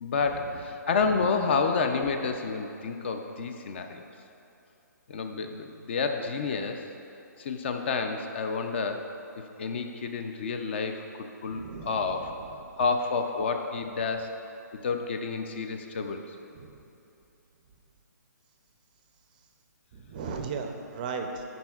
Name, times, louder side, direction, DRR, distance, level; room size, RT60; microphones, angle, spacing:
voice 1, 0.0-4.1 5.1-6.8 7.4-9.1 9.6-11.0 11.4-12.3 12.8-14.4 14.8-16.3, left 4 dB, 35° left, 6 dB, 0.5 m, -29 dB
voice 2, 11.5-12.6 16.5-16.7 19.9-21.4, right 5 dB, 25° right, 4 dB, 0.5 m, -37 dB
13.0 x 5.2 x 2.4 m, 2.8 s
hypercardioid pair, 160°, 10 cm